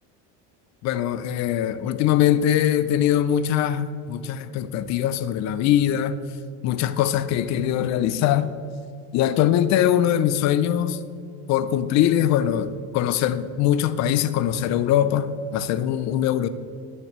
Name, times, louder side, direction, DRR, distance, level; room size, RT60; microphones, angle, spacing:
voice 1, 0.8-6.2 6.6-8.5 9.1-11.0 11.5-16.5, left 10 dB, 50° left, 13 dB, 0.5 m, -22 dB
10.5 x 6.2 x 3.1 m, 2.4 s
cardioid pair, 130°, 35 cm